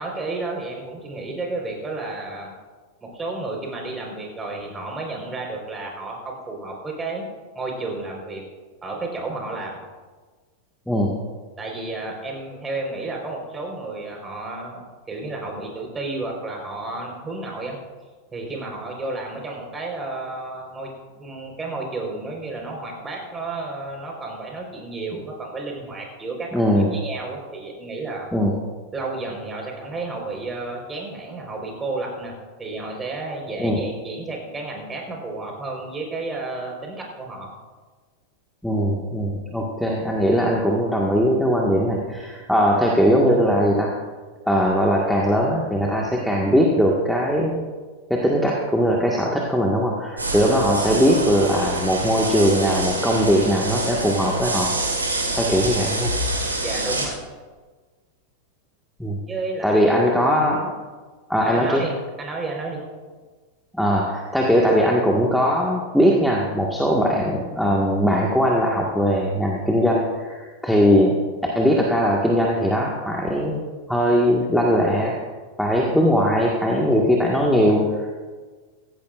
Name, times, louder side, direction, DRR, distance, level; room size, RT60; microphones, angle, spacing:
voice 1, 0.0-2.5 3.0-7.2 7.5-8.4 8.8-9.8 11.6-14.8 15.1-17.8 18.3-20.9 21.2-28.3 28.9-32.3 32.6-37.5 56.6-57.2 59.3-59.8 61.4-62.8, right 3 dB, 20° right, 0 dB, 4.4 m, -32 dB
voice 2, 26.5-27.0 28.3-28.5 33.6-33.8 38.6-43.9 44.4-47.6 48.1-54.7 55.3-56.1 59.0-59.2 59.6-60.7 61.3-61.9 63.8-71.2 71.5-73.6 73.9-75.1 75.6-78.1, equal, ahead, -2 dB, 1.7 m, -20 dB
sound 1, 50.2-57.1, right 2 dB, 85° right, 2.4 m, -26 dB
16.5 x 15.5 x 2.5 m, 1.4 s
figure-of-eight pair, 90°, 0 cm